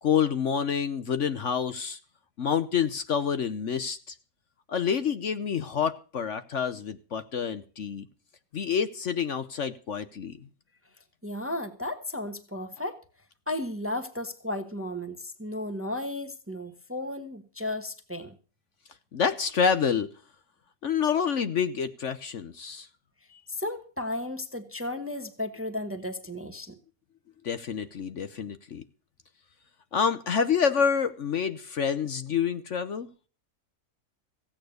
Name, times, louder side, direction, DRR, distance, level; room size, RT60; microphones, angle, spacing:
voice 1, 0.0-2.0 2.4-4.1 4.7-8.0 8.5-10.4 19.1-20.1 20.8-22.9 23.3-23.4 27.4-28.8 29.9-33.1, left 7 dB, 55° left, 11 dB, 1.1 m, -28 dB
voice 2, 11.2-13.0 13.5-18.3 23.5-26.8, left 1 dB, 10° right, 9 dB, 1.0 m, -34 dB
15.5 x 8.8 x 6.4 m, 0.38 s
omnidirectional pair, 1.6 m